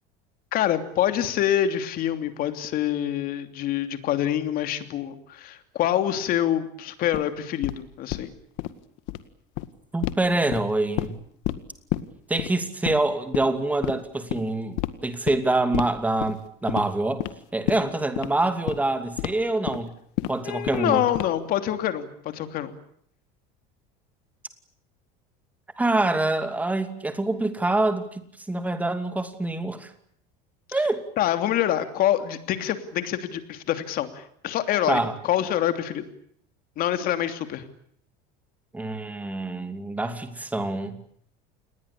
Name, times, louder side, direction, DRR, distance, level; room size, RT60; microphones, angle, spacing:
voice 1, 0.5-8.3 20.4-22.7 30.7-30.8 31.2-36.0 36.8-37.6, left 11 dB, 45° left, 9 dB, 3.0 m, -26 dB
sound 1, 7.1-7.2 7.6-7.8 8.1-8.3 8.6-8.7 9.0-9.2 9.6-9.7 10.0-10.2 10.5-11.1 11.4-11.6 11.9-12.0 12.4-12.5 12.8-13.0 13.3-13.5 13.8-13.9 14.3-14.4 14.8-14.9 15.3-15.4 15.7-15.9 16.2-16.4 16.7-16.9 17.2-17.3 17.7-17.8 18.1-18.3 18.7-18.8 19.2-19.3 19.7-19.8 20.2-20.3 20.7-20.9 21.1-21.5, left 17 dB, 65° left, 1.9 m, -28 dB
voice 2, 9.9-11.2 12.3-17.3 17.5-19.9 20.3-21.0 25.8-29.9 30.7-31.0 34.9-35.1 38.7-41.0, right 2 dB, 5° right, 8 dB, 2.7 m, -25 dB
28.5 x 20.5 x 8.5 m, 0.67 s
cardioid pair, 150°, 21 cm